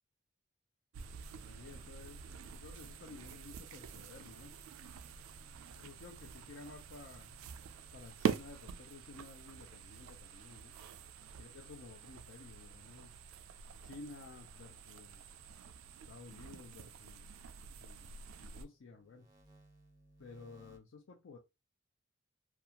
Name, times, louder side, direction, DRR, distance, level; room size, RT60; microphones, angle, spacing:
sound 1, 0.9-18.7, right 6 dB, 90° right, 0.3 m, -45 dB
sound 2, 1.0-8.5 10.5-12.6 13.1-17.9 18.3-20.8, right 1 dB, 20° right, 0.5 m, -67 dB
voice 1, 1.5-2.2 2.5-4.6 5.7-7.3 7.9-10.7 11.4-13.2 13.8-15.3 16.1-17.4 17.8-19.3 20.2-21.4, left 3 dB, 70° left, 0.5 m, -53 dB
2.3 x 2.3 x 2.7 m
head